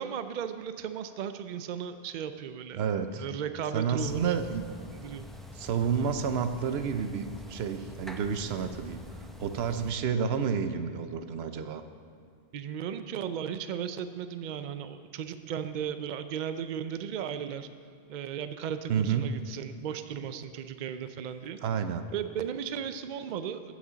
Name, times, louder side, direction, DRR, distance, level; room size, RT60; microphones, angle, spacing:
voice 1, 0.0-2.8 3.2-4.4 4.9-5.3 12.5-17.7 18.1-21.6 22.1-23.7, right 8 dB, 55° right, 10 dB, 0.6 m, -36 dB
voice 2, 2.8-3.3 3.7-4.6 5.5-9.0 9.4-11.8 18.9-19.2 21.6-22.1, right 7 dB, 85° right, 9 dB, 0.9 m, -30 dB
sound 1, 4.0-9.9, left 1 dB, ahead, 0.5 m, -45 dB
14.5 x 6.3 x 3.9 m, 2.5 s
omnidirectional pair, 1.0 m